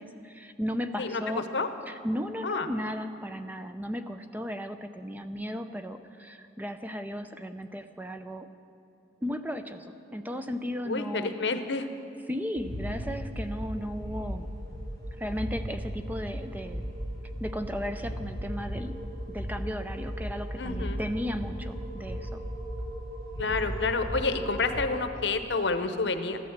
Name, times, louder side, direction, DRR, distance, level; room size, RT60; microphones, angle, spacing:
voice 1, 0.0-1.5 1.8-8.5 9.2-11.3 12.3-14.5 15.1-16.9 17.4-22.4, equal, 10° right, 8 dB, 0.5 m, -35 dB
voice 2, 10.9-11.9 20.6-21.0 23.4-26.4, left 3 dB, 70° left, 9 dB, 0.9 m, -29 dB
sound 1, 12.6-24.8, equal, 85° right, 3.5 m, -36 dB
14.5 x 11.5 x 7.4 m, 2.7 s
head